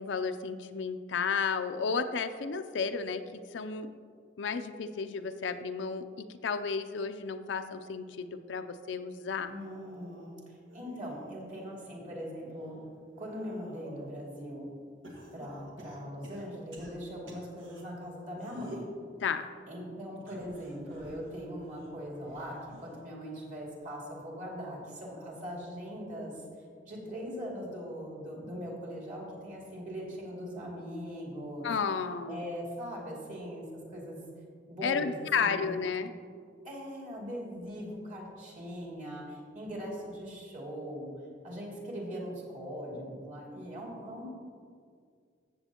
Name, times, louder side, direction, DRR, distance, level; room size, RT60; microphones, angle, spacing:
voice 1, 0.0-3.9 4.4-9.5 19.2-19.5 31.6-32.4 34.8-36.1, left 5 dB, 75° left, 9 dB, 0.5 m, -33 dB
sound 1, 9.4-11.7 12.2-14.2 15.0-17.8 18.3-19.0 20.2-23.0 23.4-23.8 25.0-25.1, equal, 85° right, 1.7 m, -51 dB
voice 2, 9.5-12.8 13.2-14.7 15.3-18.9 19.7-26.3 26.8-31.7 32.3-33.6 33.9-34.2 34.7-35.7 36.6-41.1 41.4-44.3, equal, 45° right, -3 dB, 2.5 m, -40 dB
14.0 x 7.9 x 2.9 m, 2.1 s
head